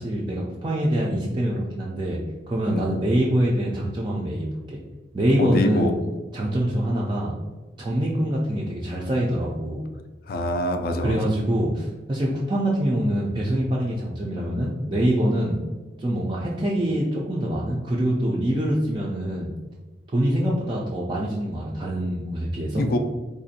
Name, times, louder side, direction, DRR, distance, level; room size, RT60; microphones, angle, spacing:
voice 1, 0.0-2.2 2.5-4.8 5.1-5.9 6.3-7.3 7.8-9.8 11.0-15.6 16.0-19.5 20.1-22.8, right 1 dB, 25° right, -4 dB, 0.3 m, -24 dB
voice 2, 5.4-5.9 10.3-11.2 22.8-23.0, left 1 dB, 55° left, 6 dB, 0.3 m, -24 dB
3.6 x 2.5 x 2.7 m, 1.3 s
head